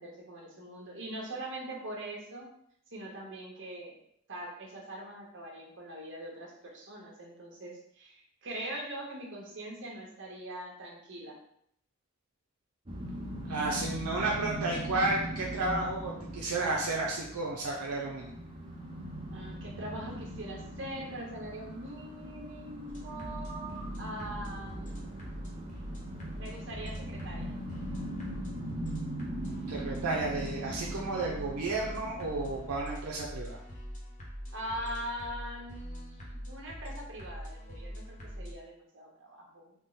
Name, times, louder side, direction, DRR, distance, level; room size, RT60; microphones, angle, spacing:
voice 1, 0.0-2.5 2.9-4.0 4.3-11.4 19.3-25.1 26.4-27.5 30.8-31.0 34.5-39.7, right 1 dB, 55° right, -3 dB, 1.0 m, -42 dB
sound 1, 12.9-32.7, right 1 dB, 20° right, 0.5 m, -40 dB
voice 2, 13.5-18.4 29.7-33.6, right 2 dB, 85° right, -2 dB, 0.5 m, -32 dB
sound 2, 22.9-38.5, equal, 35° left, 0.9 m, -43 dB
3.6 x 2.1 x 3.9 m, 0.70 s
head